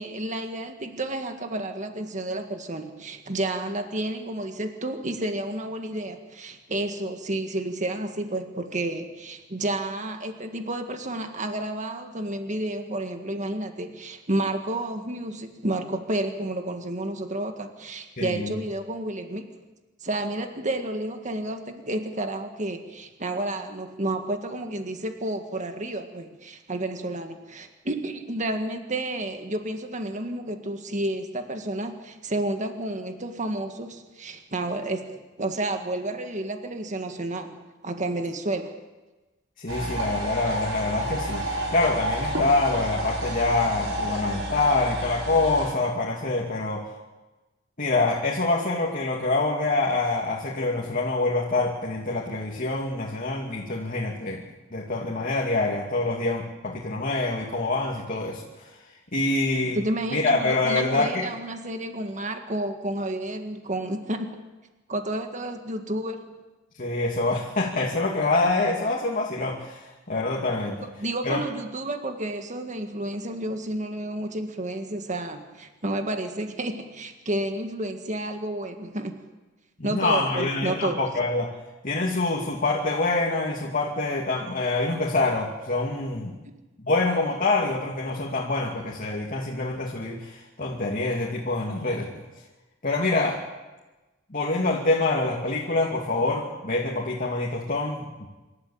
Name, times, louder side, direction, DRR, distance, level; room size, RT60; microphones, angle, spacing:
voice 1, 0.0-19.6 20.0-38.8 59.5-64.3 64.9-66.4 70.8-79.2 79.8-81.0, right 1 dB, 40° right, 6 dB, 1.8 m, -31 dB
voice 2, 18.2-18.5 39.6-46.9 47.8-54.4 54.7-58.7 59.1-59.8 60.1-61.3 66.8-70.9 71.2-71.4 79.8-81.5 81.8-86.3 86.8-92.2 92.8-93.4 94.3-98.3, left 2 dB, 45° left, -1 dB, 2.5 m, -26 dB
sound 1, 39.7-45.7, equal, 65° right, 6.6 m, -30 dB
26.5 x 13.0 x 8.6 m, 1.2 s
head